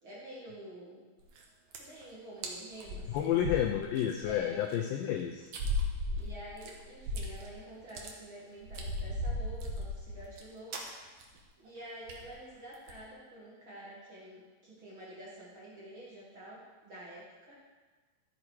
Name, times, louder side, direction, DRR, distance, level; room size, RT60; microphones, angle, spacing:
voice 1, 0.0-1.0 1.7-3.4 4.2-4.6 6.1-10.8 11.6-17.6, right 1 dB, 45° right, -6 dB, 1.9 m, -48 dB
sound 1, 1.2-1.4 1.7-2.0 2.4-2.5 2.8-4.3 4.7-4.8 5.5-7.5 7.8-8.1 8.6-10.4 10.7-10.9 11.2-11.4 11.7-11.8 12.1-12.3 12.7-13.0, left 1 dB, 75° right, 1.5 m, -36 dB
voice 2, 3.1-5.5, left 10 dB, 90° left, 4 dB, 1.9 m, -30 dB
13.5 x 6.5 x 4.7 m, 1.3 s
omnidirectional pair, 4.7 m